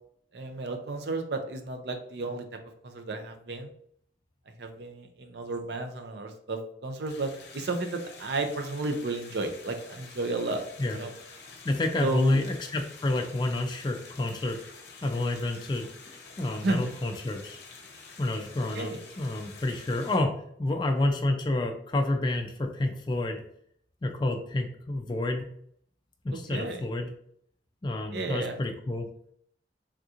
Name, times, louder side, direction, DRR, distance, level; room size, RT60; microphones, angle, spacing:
voice 1, 0.3-3.7 4.6-10.6 11.0-11.1 12.0-12.4 16.6-16.9 18.7-19.0 26.3-26.8 28.1-28.5, right 2 dB, 60° right, 5 dB, 0.5 m, -33 dB
sound 1, 7.1-20.2, left 4 dB, 60° left, 0.6 m, -48 dB
voice 2, 11.6-14.6 15.0-15.9 16.4-17.6 18.2-23.4 24.0-25.4 26.2-27.1 27.8-29.1, left 2 dB, 25° left, 3 dB, 0.3 m, -29 dB
3.5 x 2.8 x 2.4 m, 0.66 s
head